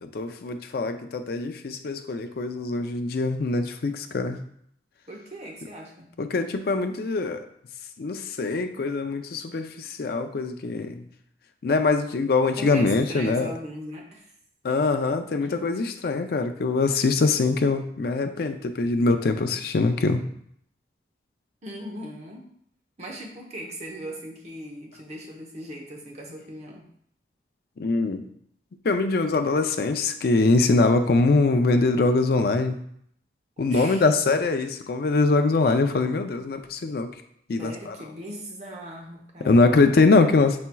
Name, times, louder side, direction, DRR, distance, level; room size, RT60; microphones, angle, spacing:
voice 1, 0.0-4.4 6.2-7.5 8.0-11.0 11.6-13.5 14.6-20.2 27.8-28.3 28.8-32.8 33.6-37.1 37.5-38.0 39.4-40.6, left 3 dB, 60° left, 7 dB, 0.4 m, -23 dB
voice 2, 5.1-6.1 12.6-14.3 21.6-22.5 23.0-26.9 33.7-34.1 37.6-39.8, equal, 40° right, -1 dB, 0.9 m, -39 dB
5.7 x 4.2 x 2.3 m, 0.68 s
head